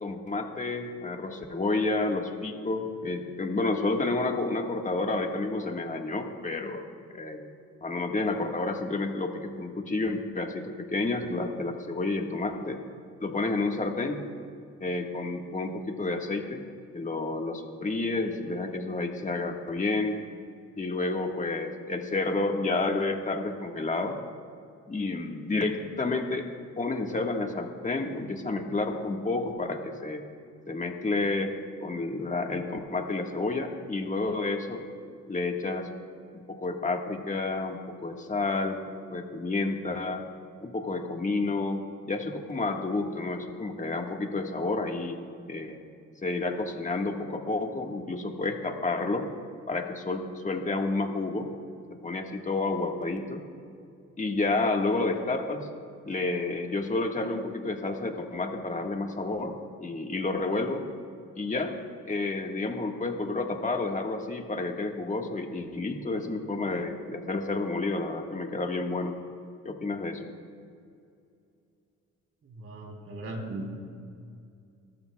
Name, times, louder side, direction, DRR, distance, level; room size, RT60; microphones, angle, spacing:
voice 1, 0.0-6.8 7.1-7.5 7.8-12.8 13.2-14.2 14.8-16.6 16.9-20.2 20.8-24.2 24.9-26.5 26.8-30.2 30.7-31.5 31.8-34.8 35.3-35.9 36.3-38.8 39.1-40.2 40.6-45.2 45.5-45.8 46.2-49.3 49.7-51.5 52.0-53.4 54.2-55.7 56.0-60.8 61.4-69.1 69.6-70.3, left 3 dB, 25° left, 3 dB, 1.6 m, -30 dB
voice 2, 72.4-73.8, right 1 dB, 50° right, 1 dB, 3.3 m, -38 dB
25.0 x 14.0 x 2.3 m, 2.4 s
cardioid pair, 90°, 30 cm